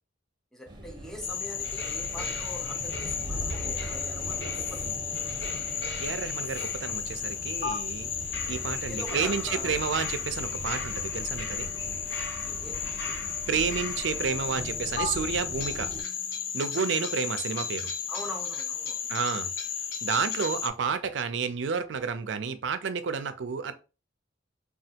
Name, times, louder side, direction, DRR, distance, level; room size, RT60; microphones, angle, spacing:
voice 1, 0.5-5.2 8.9-9.8 12.4-13.1 15.8-16.2 16.7-17.3 18.1-19.2, left 1 dB, 5° left, 0.6 m, -43 dB
sound 1, 0.7-16.0, right 1 dB, 25° right, 0.8 m, -41 dB
Frog, 1.2-20.7, left 7 dB, 85° left, 0.5 m, -34 dB
sound 2, 1.6-7.1 7.6-7.7 8.3-14.4 15.0-15.1 15.6-20.7, left 3 dB, 65° left, 0.9 m, -41 dB
voice 2, 6.0-8.1 8.5-11.7 13.5-15.9 16.5-17.9 19.1-19.5 20.0-23.7, right 6 dB, 70° right, 0.4 m, -30 dB
3.3 x 2.3 x 2.8 m
head